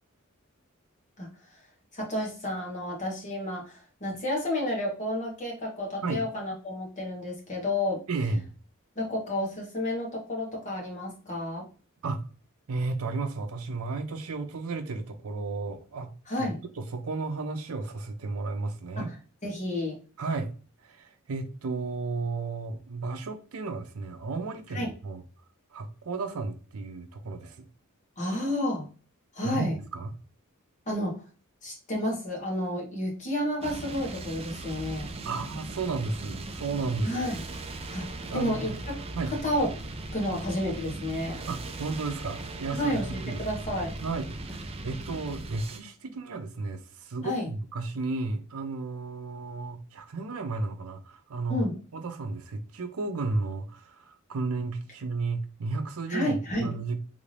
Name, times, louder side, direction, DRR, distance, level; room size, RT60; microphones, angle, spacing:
voice 1, 1.9-8.0 8.9-11.7 16.3-16.6 19.0-19.1 19.4-20.0 24.7-24.9 28.2-28.9 29.3-29.8 30.9-31.2 31.6-35.1 37.0-37.4 37.9-38.9 39.3-39.7 40.1-41.4 42.7-44.0 47.2-47.5 51.5-51.8 56.1-56.8, left 1 dB, 35° left, 1.3 m, -31 dB
voice 2, 8.1-8.5 12.0-12.2 12.7-16.1 16.4-16.5 16.8-19.1 20.2-20.5 20.8-25.2 25.7-27.7 29.4-30.1 35.2-37.4 38.3-38.8 39.2-39.3 41.5-43.4 44.0-51.7 51.9-57.0, right 3 dB, 85° right, 0.6 m, -33 dB
sound 1, 33.6-45.8, right 2 dB, 30° right, 0.4 m, -39 dB
3.4 x 2.6 x 3.3 m
head